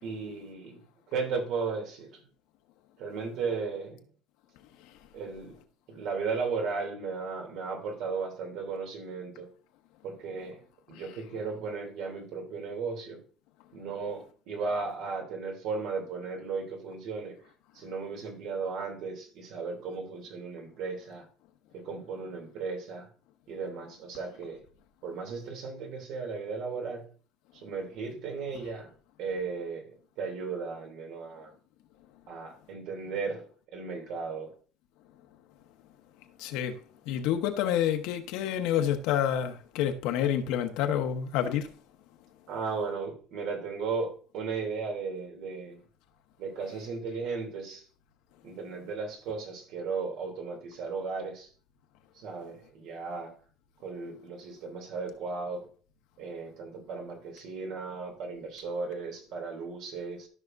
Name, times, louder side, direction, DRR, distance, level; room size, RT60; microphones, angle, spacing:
voice 1, 0.0-0.8 1.1-2.2 3.0-4.0 5.1-5.5 5.9-9.5 10.0-10.6 10.9-13.2 13.7-17.4 17.7-21.3 21.7-23.1 23.5-24.6 25.0-27.0 27.5-28.9 29.2-29.9 30.2-31.5 32.3-33.4 33.7-34.5 42.5-45.8 46.4-47.9 48.4-51.5 52.1-53.3 53.8-55.6 56.2-60.3, right 4 dB, 65° right, 2.8 m, -35 dB
voice 2, 36.4-36.7 37.1-41.7, left 10 dB, 80° left, 1.1 m, -28 dB
13.5 x 5.9 x 2.6 m
cardioid pair, 135°, 0 cm